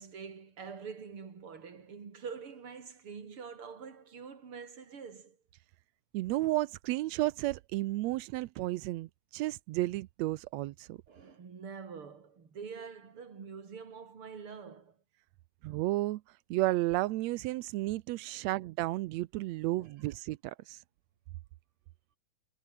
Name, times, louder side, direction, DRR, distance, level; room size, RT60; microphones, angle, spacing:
voice 1, 0.0-5.4 11.1-15.0 18.3-18.5 19.8-20.2, right 6 dB, 45° right, 3.7 m, -46 dB
voice 2, 6.1-11.0 15.6-16.2 16.5-20.8, right 17 dB, 80° right, 1.6 m, -32 dB
omnidirectional pair, 3.7 m